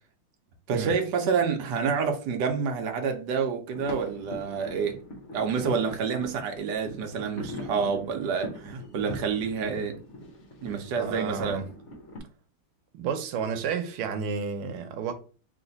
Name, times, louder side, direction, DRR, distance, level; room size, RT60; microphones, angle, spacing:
voice 1, 0.7-5.0 5.3-10.0 10.6-11.6, right 6 dB, 65° right, 1.2 m, -28 dB
sound 1, 3.7-12.2, equal, 45° left, 1.0 m, -41 dB
voice 2, 10.9-11.6 12.9-15.1, right 6 dB, 90° right, 1.6 m, -31 dB
3.3 x 3.1 x 3.9 m
omnidirectional pair, 2.3 m